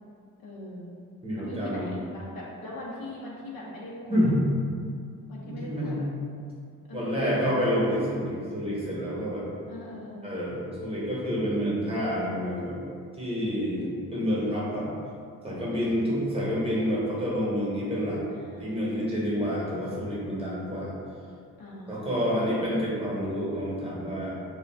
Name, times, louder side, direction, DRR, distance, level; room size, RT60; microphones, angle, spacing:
voice 1, 0.4-0.9 1.4-4.3 5.3-6.1 6.9-7.5 8.3-8.6 9.7-10.2 13.8-14.4 15.7-16.3 16.6-17.1 18.3-19.4 21.6-22.8, left 1 dB, 65° left, -5 dB, 0.7 m, -41 dB
voice 2, 1.2-1.9 4.1-4.4 5.4-6.0 6.9-9.5 10.2-12.8 13.2-13.9 14.1-14.9 15.4-18.2 18.6-20.9 21.9-24.3, equal, 15° right, -7 dB, 0.9 m, -28 dB
2.4 x 2.2 x 3.3 m, 2.3 s
cardioid pair, 75°, 36 cm